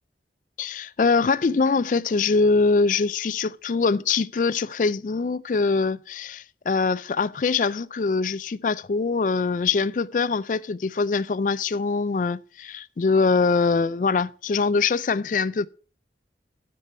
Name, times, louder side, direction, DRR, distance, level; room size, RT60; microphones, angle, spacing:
voice 1, 0.6-15.7, left 4 dB, 45° left, 0.4 m, -23 dB
12.5 x 6.7 x 4.3 m
head